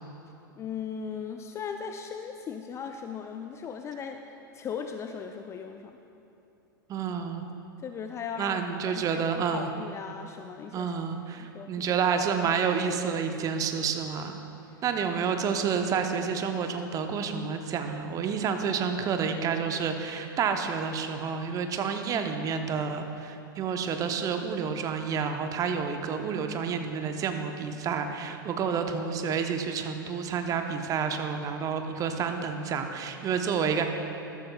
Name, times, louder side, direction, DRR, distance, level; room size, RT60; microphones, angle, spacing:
voice 1, 0.6-6.0 7.8-9.3 9.5-10.9 11.3-11.9 14.7-14.8, left 6 dB, 25° left, 6 dB, 0.4 m, -38 dB
voice 2, 6.9-7.5 8.4-9.7 10.7-14.4 14.8-33.9, right 6 dB, 30° right, 6 dB, 0.8 m, -29 dB
13.5 x 13.0 x 2.3 m, 2.8 s
figure-of-eight pair, 90°, 11 cm